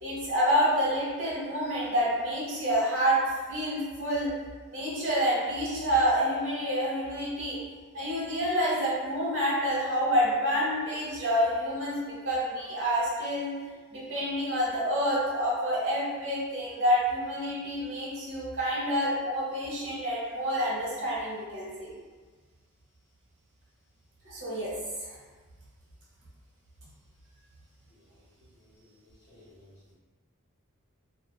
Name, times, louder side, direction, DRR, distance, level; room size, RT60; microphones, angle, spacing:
voice 1, 0.0-3.2 3.5-4.4 4.7-7.6 7.9-21.9 24.2-24.7 25.0-25.1, equal, 60° right, -7 dB, 0.9 m, -28 dB
voice 2, 27.9-29.7, left 1 dB, 50° left, -10 dB, 1.2 m, -60 dB
2.4 x 2.4 x 2.2 m, 1.4 s
head